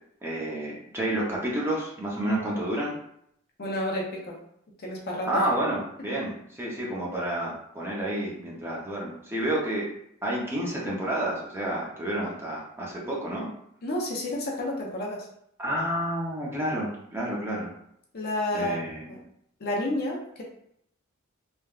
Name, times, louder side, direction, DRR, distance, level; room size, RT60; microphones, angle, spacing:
voice 1, 0.2-3.0 5.3-9.9 10.2-13.5 15.6-17.7 18.5-19.1, right 1 dB, 10° right, -4 dB, 0.6 m, -30 dB
voice 2, 3.6-4.4 4.8-5.4 13.8-15.3 18.1-18.8 19.1-19.2 19.6-20.4, left 1 dB, 50° left, -1 dB, 0.6 m, -30 dB
3.3 x 2.2 x 2.3 m, 0.72 s
head